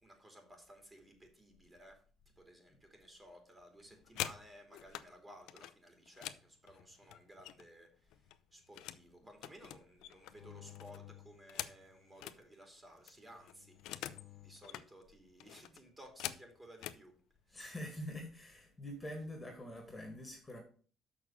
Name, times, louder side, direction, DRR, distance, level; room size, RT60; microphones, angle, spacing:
voice 1, 0.0-2.0 2.4-14.1 14.4-17.1 17.5-17.6, right 1 dB, 20° right, 2.9 m, -57 dB
sound 1, 3.8-5.1 5.5-7.8 8.1-9.1 9.4-12.4 12.8-12.9 13.1-14.3 14.6-14.9 15.4-17.0 17.8-18.0 18.4-18.7 19.0-19.5, left 14 dB, 85° left, 0.6 m, -46 dB
sound 2, 10.3-12.3 13.3-14.8, left 14 dB, 35° left, 1.7 m, -57 dB
voice 2, 17.5-20.6, left 1 dB, 15° left, 2.0 m, -45 dB
6.5 x 6.3 x 7.2 m
cardioid pair, 130°, 0 cm